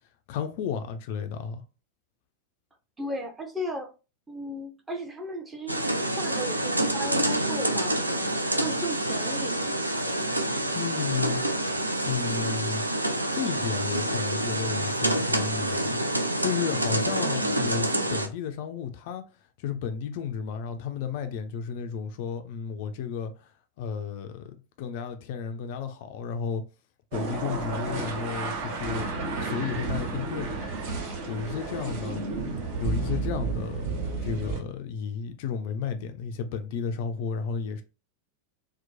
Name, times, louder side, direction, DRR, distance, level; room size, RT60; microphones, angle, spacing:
voice 1, 0.3-1.6 10.7-11.4 11.7-12.9 13.3-19.2 19.6-23.5 23.8-26.6 27.1-29.1 29.4-30.5 31.3-32.2 32.8-33.9 34.2-37.8, left 7 dB, 50° left, 0.3 m, -33 dB
voice 2, 3.0-3.9 4.3-8.3 8.6-9.6 17.2-17.7, equal, 15° right, 0.6 m, -36 dB
sound 1, 5.7-18.3, right 1 dB, 85° right, 0.3 m, -27 dB
sound 2, 27.1-34.6, right 3 dB, 50° right, 0.7 m, -32 dB
2.8 x 2.1 x 2.6 m
figure-of-eight pair, 90°, 0 cm